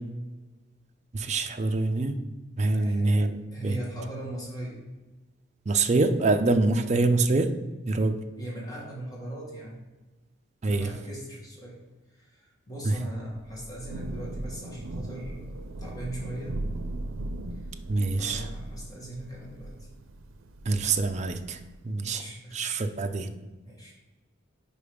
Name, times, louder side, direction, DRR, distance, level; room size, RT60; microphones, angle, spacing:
voice 1, 1.1-2.2 2.6-3.8 5.7-7.5 7.9-8.1 10.6-10.9 12.8-12.9 17.9-18.4 20.7-23.3, right 3 dB, 35° right, 6 dB, 0.5 m, -25 dB
voice 2, 2.6-3.1 3.5-4.8 8.4-9.8 10.7-11.8 12.1-16.6 17.5-17.6 18.1-19.9 22.0-22.6 23.6-24.0, right 1 dB, 20° left, -4 dB, 1.8 m, -40 dB
Thunder / Rain, 13.3-21.9, right 1 dB, 90° right, 0.5 m, -38 dB
5.1 x 4.7 x 5.1 m, 1.2 s
head